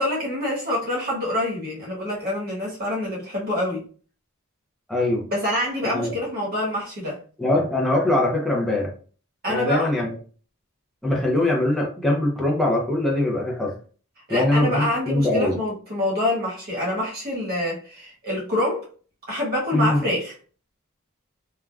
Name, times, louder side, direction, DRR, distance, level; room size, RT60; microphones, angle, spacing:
voice 1, 0.0-3.8 5.3-7.2 9.4-9.9 14.3-18.8 19.3-20.3, left 1 dB, 45° right, 1.2 m, -26 dB
voice 2, 4.9-5.2 5.9-6.1 7.4-8.9 9.5-10.2 11.0-13.7 14.3-15.6 19.7-20.0, left 1 dB, ahead, 0.5 m, -22 dB
3.2 x 2.2 x 2.3 m
head